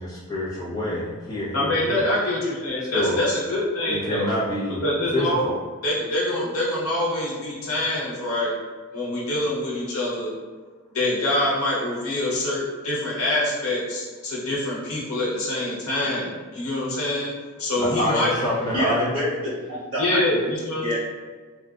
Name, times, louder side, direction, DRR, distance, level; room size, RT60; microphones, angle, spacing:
voice 1, 0.0-2.1 2.9-3.2 3.8-4.8 5.1-5.5 17.8-19.1, left 1 dB, 20° left, -8 dB, 0.9 m, -26 dB
voice 2, 1.5-4.4 4.8-5.4 5.8-8.6 8.9-10.3 10.9-17.3 17.6-18.3 20.0-21.0, left 1 dB, 70° left, -6 dB, 1.0 m, -25 dB
voice 3, 18.7-20.2 20.8-21.0, equal, 65° right, -10 dB, 1.5 m, -27 dB
3.4 x 2.5 x 2.4 m, 1.5 s
head